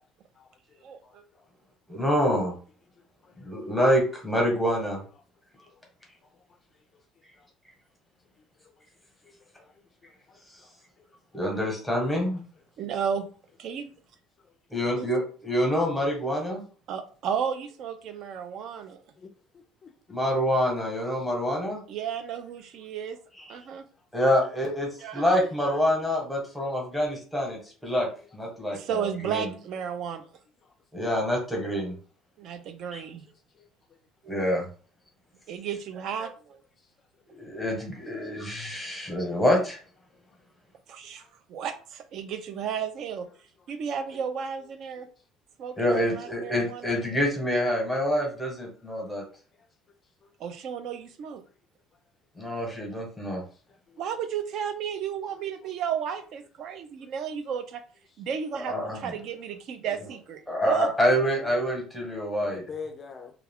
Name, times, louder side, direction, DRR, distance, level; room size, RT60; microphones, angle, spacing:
voice 1, 1.9-2.5 3.4-5.0 11.3-12.4 14.7-16.6 20.1-21.8 23.4-23.6 24.1-28.1 28.3-29.5 30.9-31.9 32.9-33.0 34.2-34.7 37.3-39.8 45.8-49.2 52.4-53.4 58.5-59.2 60.5-62.6, equal, ahead, -1 dB, 1.0 m, -26 dB
voice 2, 10.3-10.7 19.2-19.3 19.8-19.9 53.9-54.0 55.4-55.5 61.5-61.7 62.4-63.3, left 5 dB, 30° left, 4 dB, 0.4 m, -42 dB
voice 3, 12.8-13.3 13.6-13.9 15.0-15.1 16.9-19.0 21.9-23.2 23.5-23.8 25.0-25.2 28.7-30.2 32.4-33.2 35.5-36.4 40.9-41.2 41.5-43.3 43.7-45.1 45.6-47.0 50.4-51.4 54.0-57.8 58.2-60.9, right 7 dB, 55° right, 8 dB, 0.4 m, -33 dB
2.3 x 2.3 x 3.5 m, 0.40 s
cardioid pair, 145°, 0 cm